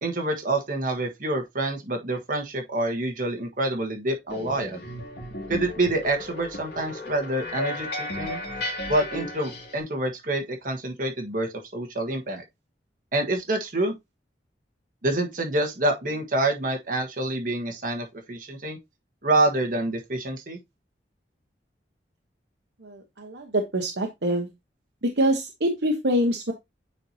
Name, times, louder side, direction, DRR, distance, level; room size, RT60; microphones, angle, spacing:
voice 1, 0.0-4.8 5.5-8.4 8.9-12.4 13.1-13.9 15.0-18.8 19.2-20.6, right 2 dB, 50° right, 1.4 m, -27 dB
sound 1, 4.3-9.8, left 1 dB, 65° left, 2.4 m, -34 dB
voice 2, 22.8-24.5 25.0-26.5, equal, 75° right, 1.0 m, -25 dB
8.9 x 4.5 x 2.8 m
head